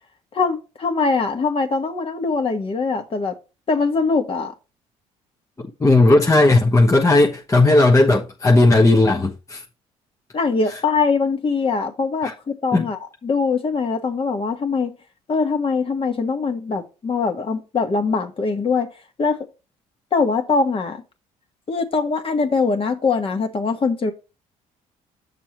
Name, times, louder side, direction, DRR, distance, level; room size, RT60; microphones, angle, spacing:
voice 1, 0.3-3.3 3.7-4.5 10.3-14.9 15.3-18.9 19.2-19.4 20.1-21.0 21.7-24.1, left 4 dB, 40° left, 1.5 m, -22 dB
voice 2, 5.6-9.6 12.2-12.3 12.7-12.9, left 2 dB, 20° left, 1.1 m, -15 dB
7.6 x 6.7 x 3.0 m
supercardioid pair, 75°, 14 cm